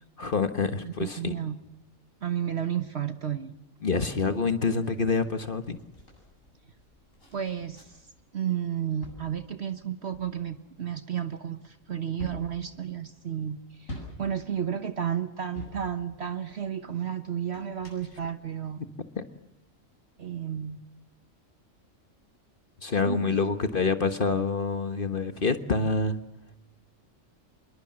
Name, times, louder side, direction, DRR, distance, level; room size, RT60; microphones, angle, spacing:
voice 1, 0.2-1.3 3.8-5.8 19.2-19.3 22.8-26.2, left 4 dB, 40° left, 10 dB, 1.5 m, -27 dB
voice 2, 0.8-1.6 2.2-3.5 7.3-8.0 8.3-18.8 20.2-20.8 23.1-23.4, right 9 dB, 55° right, 10 dB, 1.4 m, -32 dB
sound 1, 4.8-8.2 8.6-16.7 17.4-18.6 19.2-19.3, left 1 dB, 75° left, 8.5 m, -47 dB
26.0 x 21.5 x 7.6 m, 0.93 s
omnidirectional pair, 1.4 m